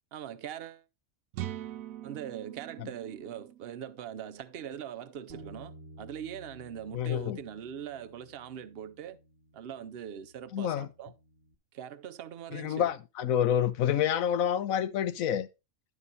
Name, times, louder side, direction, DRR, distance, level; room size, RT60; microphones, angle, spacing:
voice 1, 0.1-0.8 2.0-9.2 9.5-11.1 11.7-12.9, right 9 dB, 55° right, 0.8 m, -42 dB
sound 1, 1.3-5.1, right 13 dB, 85° right, 1.0 m, -43 dB
Bass guitar, 5.3-11.5, right 1 dB, 40° right, 1.1 m, -53 dB
voice 2, 6.9-7.4 10.5-10.9 12.5-15.5, left 9 dB, 90° left, 1.1 m, -28 dB
11.0 x 5.3 x 4.0 m
omnidirectional pair, 1.4 m